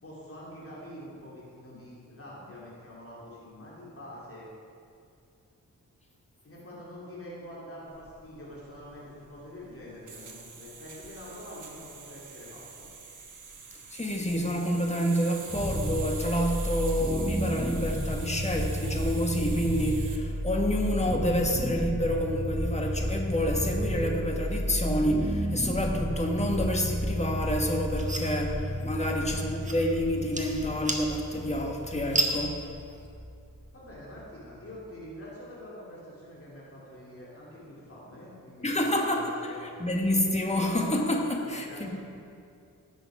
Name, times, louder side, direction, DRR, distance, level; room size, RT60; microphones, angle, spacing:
voice 1, 0.0-4.5 6.4-12.9 29.0-29.5 33.7-39.7 41.4-42.0, left 1 dB, 40° left, -6 dB, 2.7 m, -46 dB
sound 1, 7.9-20.2, right 5 dB, 60° right, 1.3 m, -45 dB
voice 2, 13.9-32.6 38.6-42.0, equal, 20° left, 1 dB, 1.5 m, -28 dB
sound 2, 15.5-34.5, equal, 5° right, 1.0 m, -32 dB
sound 3, 27.4-33.1, right 2 dB, 20° right, 1.4 m, -35 dB
16.5 x 6.7 x 4.9 m, 2.5 s
wide cardioid pair, 105°, 34 cm